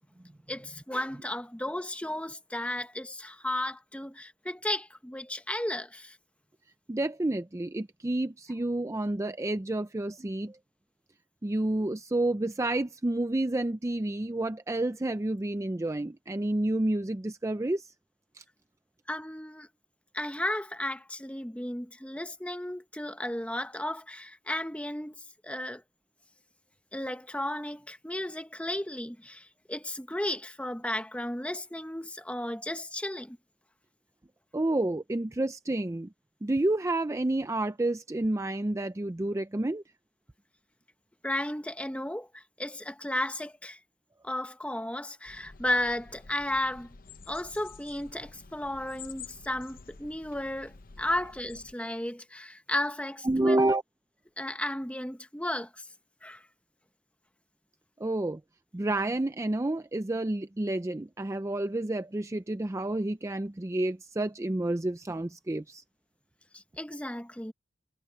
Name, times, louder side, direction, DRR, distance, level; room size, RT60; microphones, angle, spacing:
voice 1, 0.5-6.2 19.1-19.7 20.1-25.1 25.4-25.8 26.9-33.4 41.2-43.8 44.2-46.9 47.3-53.7 54.4-55.9 56.2-56.4 66.5-67.5, left 1 dB, 5° left, 1.2 m, -34 dB
voice 2, 6.9-10.6 11.4-17.9 18.3-18.4 34.5-36.1 36.4-39.8 53.2-53.8 58.0-58.4 58.7-65.8, right 1 dB, 15° right, 0.5 m, -29 dB
sound 1, 45.3-51.7, left 5 dB, 50° left, 0.8 m, -50 dB
head